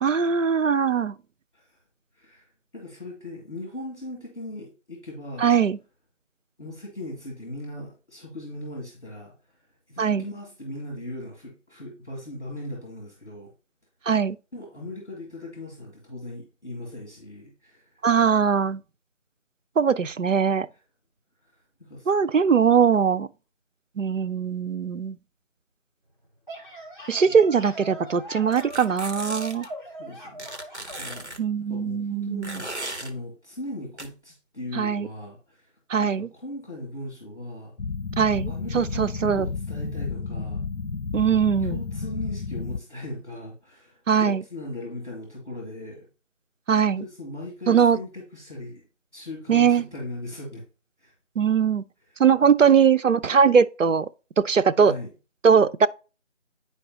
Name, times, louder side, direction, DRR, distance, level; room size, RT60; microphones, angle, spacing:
voice 1, 0.0-1.1 5.4-5.8 10.0-10.2 14.1-14.4 18.0-18.8 19.8-20.7 22.1-23.3 24.0-25.2 27.1-29.7 31.4-32.6 34.7-35.1 35.9-36.3 38.2-39.5 41.1-41.8 44.1-44.4 46.7-47.0 47.7-48.0 49.5-49.8 51.4-51.8 52.2-54.1 54.4-54.9 55.4-55.9, right 6 dB, 75° right, 0.5 m, -21 dB
voice 2, 2.1-5.5 6.6-13.5 14.5-18.0 20.7-20.8 21.4-22.3 27.3-27.4 30.0-35.7 36.0-37.7 38.5-40.6 41.6-46.1 46.9-48.8 49.1-50.6 51.0-51.1 52.1-52.2 54.8-55.1, left 1 dB, 45° left, 2.3 m, -39 dB
sound 1, 26.2-31.2, right 1 dB, 40° right, 2.0 m, -41 dB
sound 2, 28.5-29.7 30.4-31.4 32.4-33.1 34.0-34.1, right 1 dB, 60° right, 1.0 m, -36 dB
sound 3, 37.8-42.8, left 4 dB, 80° left, 0.6 m, -32 dB
9.9 x 4.5 x 2.8 m
figure-of-eight pair, 180°, 38 cm